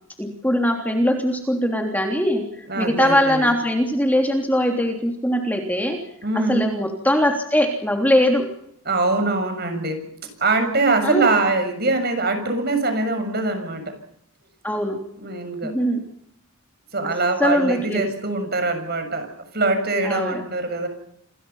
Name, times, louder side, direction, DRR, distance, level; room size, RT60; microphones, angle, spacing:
voice 1, 0.2-6.0 6.5-8.5 11.0-11.3 14.6-15.0 15.6-16.0 17.4-18.1 20.0-20.4, equal, 10° left, 2 dB, 3.3 m, -21 dB
voice 2, 2.7-3.5 6.2-6.7 8.9-10.0 10.4-13.8 15.2-15.7 16.9-19.3 19.5-20.9, right 3 dB, 45° right, 7 dB, 6.8 m, -23 dB
28.5 x 22.0 x 5.8 m, 0.69 s
head